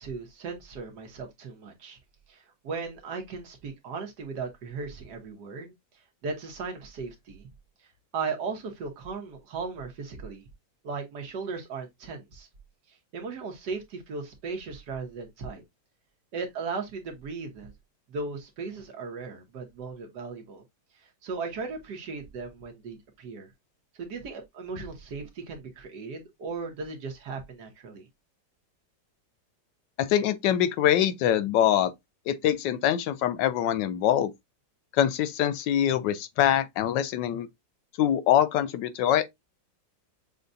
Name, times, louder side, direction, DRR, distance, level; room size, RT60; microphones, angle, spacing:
voice 1, 0.0-2.0 2.3-5.7 6.2-7.5 8.1-10.4 10.8-12.5 13.1-15.6 16.3-17.7 18.1-20.6 21.2-23.5 24.0-28.1, right 4 dB, 65° right, 1.7 m, -37 dB
voice 2, 30.0-31.9 32.3-34.3 34.9-37.5 38.0-39.3, left 11 dB, 80° left, 1.2 m, -24 dB
6.5 x 2.3 x 2.6 m
omnidirectional pair, 2.0 m